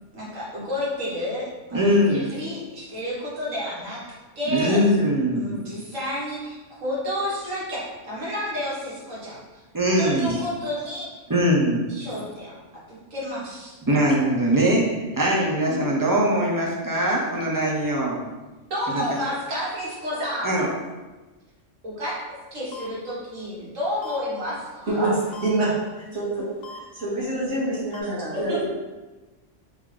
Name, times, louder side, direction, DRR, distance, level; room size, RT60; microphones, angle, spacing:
voice 1, 0.1-4.0 4.4-4.8 5.3-9.4 10.0-11.1 11.9-12.6 13.1-13.7 18.7-20.5 21.8-25.2 28.3-28.7, left 1 dB, 90° right, -7 dB, 1.9 m, -30 dB
voice 2, 1.7-2.3 4.5-5.5 9.7-10.4 11.3-11.8 13.9-18.2 18.9-19.0 20.4-20.7, equal, 25° right, -3 dB, 0.4 m, -21 dB
sound 1, 22.7-22.9 24.0-24.2 25.3-25.5 26.6-26.8 27.9-28.0, left 4 dB, 60° left, 0.8 m, -39 dB
voice 3, 26.1-26.5 26.9-28.7, right 2 dB, 70° right, -8 dB, 1.7 m, -26 dB
3.6 x 3.5 x 3.3 m, 1.2 s
omnidirectional pair, 1.3 m